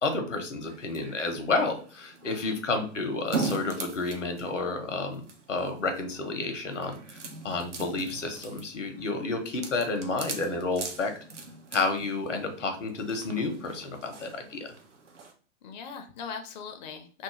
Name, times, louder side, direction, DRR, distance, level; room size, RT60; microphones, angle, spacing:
voice 1, 0.0-7.2 7.4-11.1 11.7-14.7, left 3 dB, 80° left, 5 dB, 0.8 m, -30 dB
sound 1, 0.7-15.3, right 3 dB, 75° right, 0.7 m, -41 dB
voice 2, 2.2-2.6 12.6-12.7 15.6-17.2, left 6 dB, 40° left, 5 dB, 0.4 m, -40 dB
2.5 x 2.1 x 3.0 m, 0.40 s
figure-of-eight pair, 105°, 37 cm